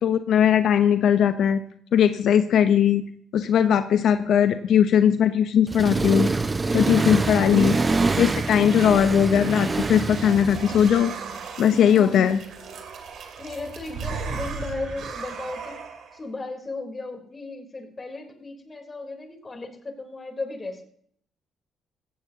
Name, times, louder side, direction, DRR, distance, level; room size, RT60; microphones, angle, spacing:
voice 1, 0.0-1.6 1.9-3.0 3.3-6.3 6.7-7.7 8.2-11.1 11.6-12.4, left 8 dB, 70° left, 9 dB, 0.8 m, -19 dB
Accelerating revving vroom, 5.7-10.9, right 3 dB, 25° right, 0.6 m, -25 dB
sound 1, 6.5-16.2, right 5 dB, 70° right, 2.7 m, -37 dB
voice 2, 11.8-12.4 13.4-15.8 16.1-20.8, left 2 dB, 30° left, 3 dB, 3.6 m, -36 dB
17.0 x 15.5 x 2.9 m, 0.63 s
cardioid pair, 90°, 0 cm